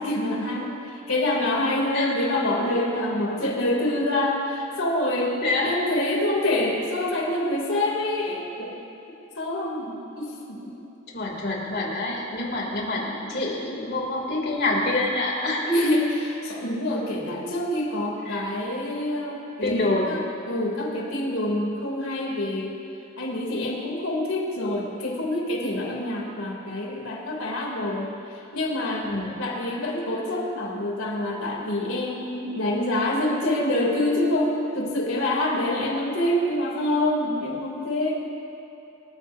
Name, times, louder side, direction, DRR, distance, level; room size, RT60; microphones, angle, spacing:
voice 1, 0.0-5.4 5.6-8.8 9.4-10.7 15.6-22.8 23.2-29.1 29.4-38.2, left 1 dB, 85° left, -1 dB, 3.3 m, -26 dB
voice 2, 5.4-5.7 11.1-15.7 18.3-18.4 19.6-20.2 29.0-29.4, left 2 dB, 50° left, -2 dB, 3.1 m, -26 dB
28.5 x 14.5 x 2.8 m, 2.9 s
head